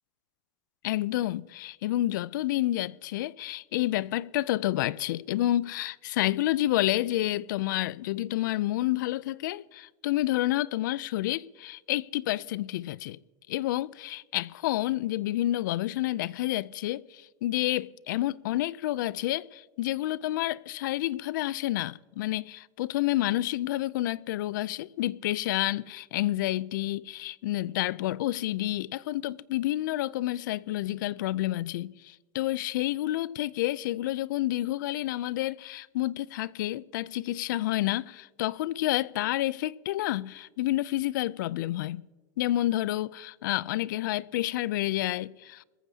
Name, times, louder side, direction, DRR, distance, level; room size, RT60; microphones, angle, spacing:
voice 1, 0.8-13.2 13.5-42.1 42.4-45.6, left 15 dB, 75° left, 0.4 m, -29 dB
21.0 x 14.5 x 2.8 m
supercardioid pair, 170°, 10 cm